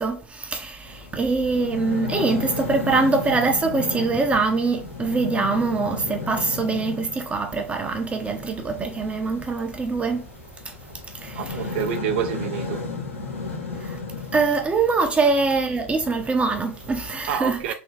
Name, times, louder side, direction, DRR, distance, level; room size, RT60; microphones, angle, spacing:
voice 1, 0.0-10.3 11.2-11.6 13.8-14.0 14.3-17.7, right 4 dB, 20° right, 0.7 m, -23 dB
sound 1, 0.9-17.2, left 3 dB, 80° left, 1.4 m, -34 dB
voice 2, 11.4-12.9 17.3-17.7, right 9 dB, 60° right, 0.5 m, -28 dB
3.5 x 3.0 x 3.9 m
figure-of-eight pair, 85°, 7 cm